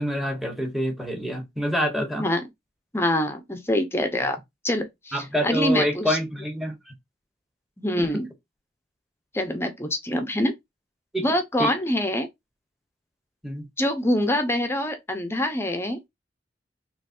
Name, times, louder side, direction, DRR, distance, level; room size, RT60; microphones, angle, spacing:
voice 1, 0.0-2.2 5.1-6.7 8.0-8.1 11.1-11.2 11.6-11.7 13.4-13.6, equal, ahead, 1.2 m, -26 dB
voice 2, 2.9-4.4 4.6-6.2 7.8-8.3 9.3-10.5 11.2-12.3 13.8-16.0, left 1 dB, 15° left, 0.8 m, -25 dB
5.0 x 3.2 x 2.6 m
head